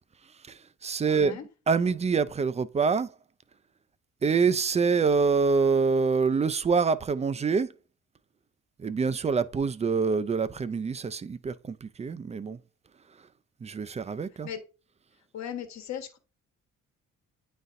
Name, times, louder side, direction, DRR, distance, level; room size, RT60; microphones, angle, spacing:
voice 1, 0.4-1.4 1.7-3.1 4.2-7.7 8.8-12.6 13.6-14.5, right 5 dB, 20° right, 0.4 m, -26 dB
voice 2, 1.1-1.4 14.4-14.6 15.3-16.2, left 9 dB, 65° left, 1.3 m, -37 dB
9.1 x 4.1 x 2.5 m
cardioid pair, 90°, 30 cm